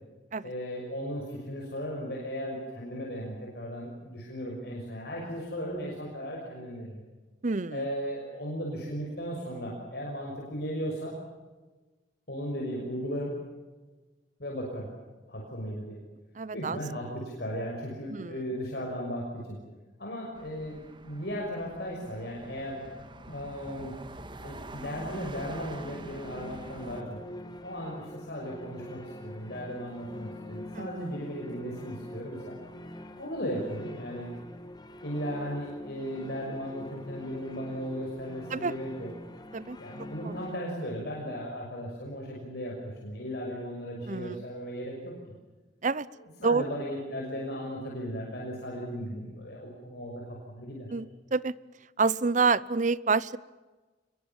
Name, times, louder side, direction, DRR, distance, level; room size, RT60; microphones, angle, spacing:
voice 1, 0.4-7.0 7.7-11.1 12.3-13.4 14.4-14.9 15.3-16.0 16.5-19.6 20.0-22.8 23.3-24.0 24.4-27.2 27.6-32.6 33.2-34.3 35.0-39.1 39.8-45.1 46.4-50.9, equal, 60° left, -2 dB, 6.2 m, -36 dB
voice 2, 7.4-7.8 16.4-16.8 18.1-18.4 30.7-31.0 38.5-38.7 39.5-39.8 40.2-40.3 44.1-44.4 45.8-46.1 46.4-46.6 50.9-51.5 52.0-53.4, right 4 dB, 45° right, 20 dB, 0.8 m, -28 dB
sound 1, 20.3-27.0, right 2 dB, 25° right, 1.7 m, -46 dB
sound 2, 24.9-40.6, left 1 dB, 25° left, 1.9 m, -45 dB
27.0 x 22.5 x 7.3 m, 1.2 s
head